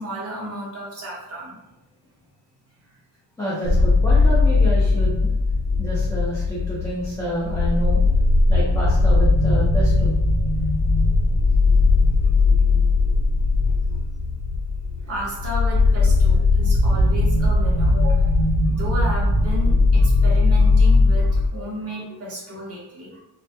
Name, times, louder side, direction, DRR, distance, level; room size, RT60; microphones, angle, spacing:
voice 1, 0.0-1.6 11.7-12.3 15.1-18.3 18.6-23.2, equal, 35° right, -4 dB, 0.7 m, -33 dB
voice 2, 3.4-5.3 5.8-8.0 8.5-10.1, equal, 5° left, -9 dB, 0.3 m, -28 dB
sound 1, 3.6-21.5, left 3 dB, 80° left, 0.9 m, -18 dB
2.2 x 2.1 x 2.7 m, 0.88 s
cardioid pair, 165°, 42 cm